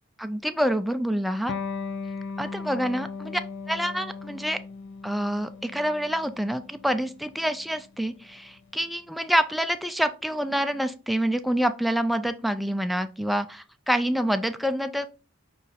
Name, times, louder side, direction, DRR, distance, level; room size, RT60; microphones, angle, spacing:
voice 1, 0.2-1.5 2.4-3.4 3.7-4.6 5.0-15.1, equal, ahead, 8 dB, 0.3 m, -27 dB
Electric guitar, 1.5-8.6, left 4 dB, 65° left, 0.4 m, -38 dB
5.5 x 2.4 x 4.0 m, 0.34 s
head